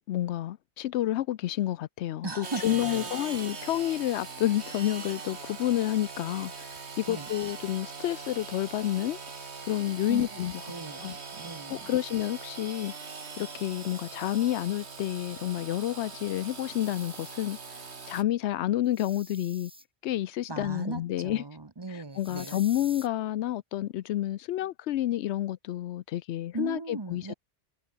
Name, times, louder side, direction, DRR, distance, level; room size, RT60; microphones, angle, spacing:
voice 1, 0.0-6.7 7.0-9.2 9.7-10.6 11.0-11.2 11.7-12.9 13.4-17.6 18.1-19.7 20.0-21.4 21.9-27.3, left 13 dB, 90° left, 0.9 m, -29 dB
voice 2, 2.2-3.1 7.1-7.3 10.1-10.3 10.7-11.9 20.5-22.6 26.5-27.3, right 3 dB, 25° right, 0.9 m, -38 dB
Engine / Sawing, 2.4-18.2, right 4 dB, 85° right, 2.2 m, -41 dB
sound 1, 16.7-17.4 18.8-19.8 22.2-23.1, equal, 5° right, 4.6 m, -49 dB
omnidirectional pair, 1.1 m